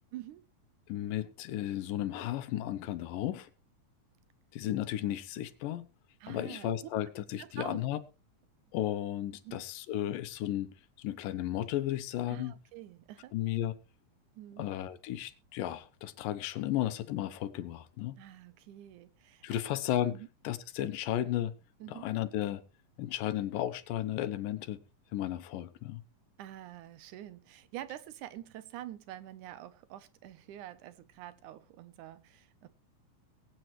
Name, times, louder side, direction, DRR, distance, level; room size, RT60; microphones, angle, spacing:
voice 1, 0.1-0.4 6.2-6.7 7.4-7.8 9.4-9.6 12.3-13.3 14.4-14.7 18.2-19.6 20.1-20.3 21.8-22.1 26.4-32.7, right 13 dB, 70° right, 2.1 m, -46 dB
voice 2, 0.9-3.5 4.5-5.9 6.3-8.0 8.7-12.5 13.3-13.7 14.6-18.2 19.4-20.2 20.4-21.5 21.9-22.6 23.0-24.8 25.1-26.0, left 12 dB, 75° left, 2.4 m, -34 dB
21.5 x 9.1 x 3.1 m
omnidirectional pair, 4.0 m